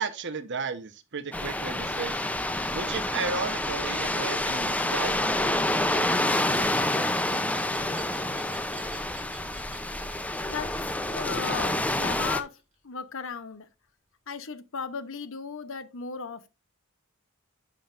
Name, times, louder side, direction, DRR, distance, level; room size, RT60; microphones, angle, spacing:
voice 1, 0.0-2.2 2.7-5.4, right 5 dB, 55° right, 1.0 m, -34 dB
sound 1, 1.3-12.4, left 1 dB, 5° left, 0.5 m, -28 dB
Glass, 5.9-12.7, right 4 dB, 35° right, 5.0 m, -49 dB
voice 2, 11.1-12.6 12.8-13.7 14.3-16.5, left 5 dB, 65° left, 0.9 m, -36 dB
11.0 x 6.0 x 2.5 m
head